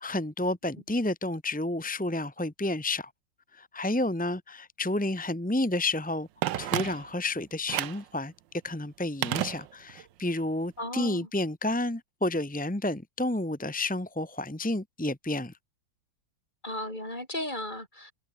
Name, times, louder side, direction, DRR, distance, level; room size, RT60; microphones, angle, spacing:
voice 1, 0.0-3.1 3.5-6.3 6.6-8.3 8.6-15.5, left 2 dB, 5° left, 0.7 m, -30 dB
Telephone, 6.4-7.3 7.7-8.1 9.2-10.1 10.4-10.5, right 12 dB, 70° right, 1.5 m, -31 dB
voice 2, 10.8-11.3 16.6-18.1, left 1 dB, 20° left, 7.4 m, -35 dB
omnidirectional pair, 2.1 m